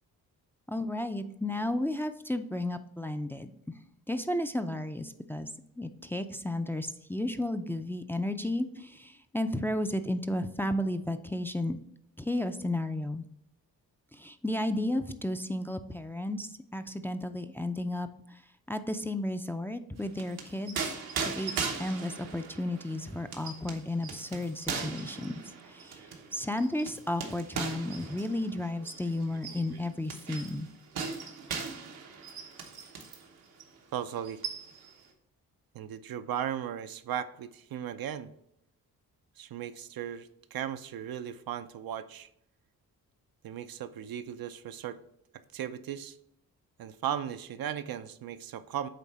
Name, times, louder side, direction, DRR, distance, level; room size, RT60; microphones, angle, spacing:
voice 1, 0.7-3.5 4.1-5.5 5.8-11.8 12.2-13.2 14.1-18.4 18.7-25.3 25.6-26.0 26.3-30.7, left 1 dB, 5° left, 7 dB, 0.4 m, -33 dB
sound 1, 20.0-33.3 33.6-33.8 34.1-34.9, right 5 dB, 85° right, 1.0 m, -39 dB
voice 2, 33.9-34.4 35.7-38.3 39.4-42.3 43.4-45.0 45.5-46.2 46.8-48.9, right 10 dB, 70° right, 10 dB, 0.6 m, -36 dB
8.4 x 3.2 x 4.2 m, 0.76 s
cardioid pair, 60°, 37 cm